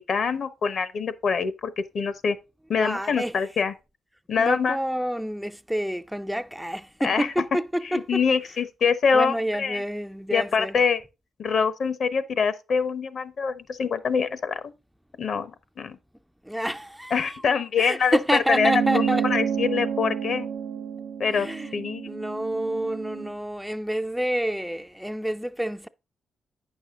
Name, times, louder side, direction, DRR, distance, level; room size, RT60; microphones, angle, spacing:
voice 1, 0.0-2.4 2.7-3.7 4.3-4.8 7.0-7.3 7.9-9.8 10.3-11.0 11.4-14.7 15.2-16.0 17.1-18.2 18.6-20.5 21.2-21.5 21.7-22.1, left 5 dB, 60° left, 0.9 m, -25 dB
voice 2, 2.8-3.4 4.4-8.2 9.1-10.8 16.5-17.5 17.8-19.3 21.3-21.8 22.1-25.9, equal, 5° right, 0.4 m, -28 dB
sound 1, 18.5-23.3, right 7 dB, 60° right, 0.5 m, -29 dB
8.8 x 6.2 x 3.7 m
cardioid pair, 80°, 0 cm